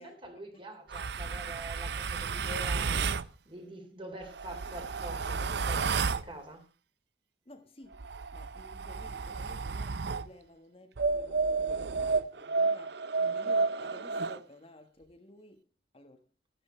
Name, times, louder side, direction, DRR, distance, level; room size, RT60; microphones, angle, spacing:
voice 1, 0.0-3.0 3.4-6.6, right 1 dB, 30° right, 3.3 m, -45 dB
sound 1, 0.9-3.3 4.2-6.3 7.9-10.3 11.0-14.4, right 4 dB, 65° right, 0.6 m, -31 dB
voice 2, 7.4-8.1 8.3-16.3, left 1 dB, 30° left, 1.4 m, -54 dB
12.5 x 12.5 x 4.4 m
head